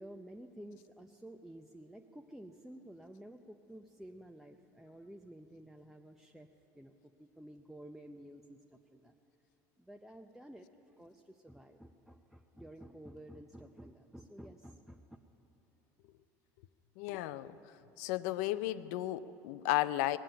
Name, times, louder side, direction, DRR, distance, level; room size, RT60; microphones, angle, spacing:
voice 1, 0.0-6.5 6.7-9.1 9.8-15.0, right 1 dB, 5° right, 3 dB, 0.6 m, -52 dB
voice 2, 17.0-17.6 18.0-20.2, left 15 dB, 75° left, 14 dB, 0.5 m, -34 dB
20.0 x 7.5 x 8.9 m, 3.0 s
supercardioid pair, 90°, 9 cm